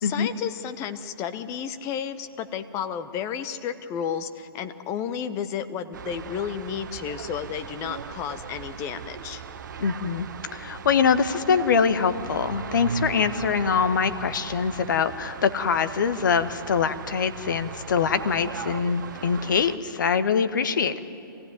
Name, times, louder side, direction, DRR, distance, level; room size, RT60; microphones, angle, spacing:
voice 1, 0.0-9.4, left 8 dB, 25° left, 11 dB, 1.0 m, -32 dB
sound 1, 5.9-19.8, right 7 dB, 55° right, 1.1 m, -38 dB
voice 2, 9.8-21.0, left 6 dB, 55° left, 11 dB, 1.3 m, -24 dB
26.5 x 16.0 x 9.6 m, 2.7 s
figure-of-eight pair, 120°, 12 cm